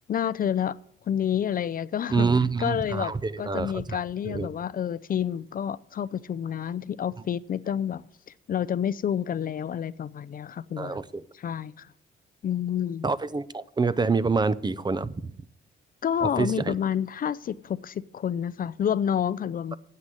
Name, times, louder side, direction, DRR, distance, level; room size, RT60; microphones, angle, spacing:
voice 1, 0.1-0.8 1.1-2.3 2.6-8.0 8.5-11.0 11.3-11.9 12.4-13.1 16.0-19.8, left 9 dB, 45° left, 0.5 m, -29 dB
voice 2, 2.1-4.0 4.3-4.5 10.8-11.2 13.0-15.3 16.2-16.7, right 4 dB, 20° right, 0.6 m, -26 dB
9.7 x 7.8 x 8.3 m
cardioid pair, 90°, 20 cm